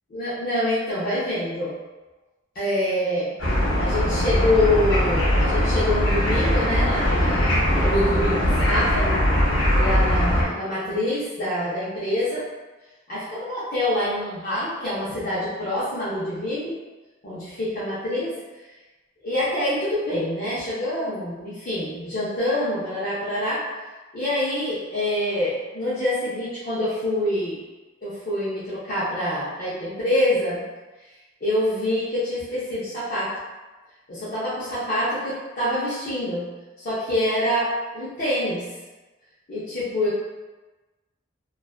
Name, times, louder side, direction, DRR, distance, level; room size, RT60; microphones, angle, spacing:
voice 1, 0.1-1.8 2.5-3.3 3.8-9.1 9.8-12.4 13.1-16.7 17.2-18.3 19.2-23.6 24.1-27.6 28.0-30.6 31.4-33.3 34.1-36.5 36.8-38.7 39.5-40.2, left 1 dB, 50° left, -11 dB, 0.6 m, -26 dB
sound 1, 3.4-10.4, equal, 90° left, 0.7 m, -21 dB
2.4 x 2.2 x 2.3 m, 1.2 s
head